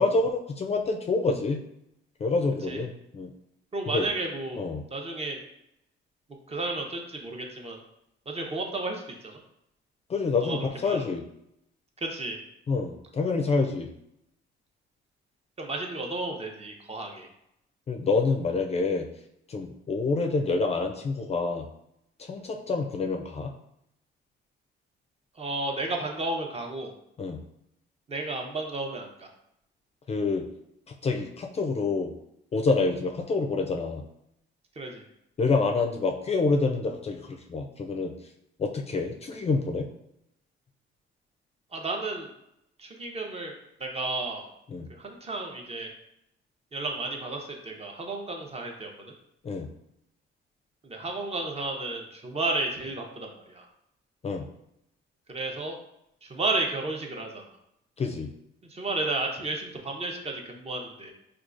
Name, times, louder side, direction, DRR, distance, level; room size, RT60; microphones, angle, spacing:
voice 1, 0.0-1.6 2.2-3.3 3.9-4.1 4.6-4.8 10.1-11.2 12.7-13.9 17.9-19.1 19.5-21.7 22.2-23.5 27.2-27.4 30.1-30.5 31.0-32.1 32.5-34.0 35.4-38.1 38.6-39.9 44.7-44.9 49.4-49.7 54.2-54.5 58.0-58.3, left 3 dB, 30° left, 2 dB, 0.4 m, -27 dB
voice 2, 3.7-4.6 4.9-5.4 6.5-7.8 8.3-9.4 10.4-11.0 12.0-12.4 15.6-17.3 25.4-26.9 28.1-29.3 34.8-35.0 41.7-42.3 42.8-43.5 43.8-44.5 44.9-45.9 46.7-48.9 50.8-53.7 55.3-55.8 56.2-57.6 58.7-61.1, right 2 dB, 30° right, 2 dB, 0.7 m, -32 dB
4.6 x 2.3 x 2.5 m, 0.79 s
cardioid pair, 90°, 20 cm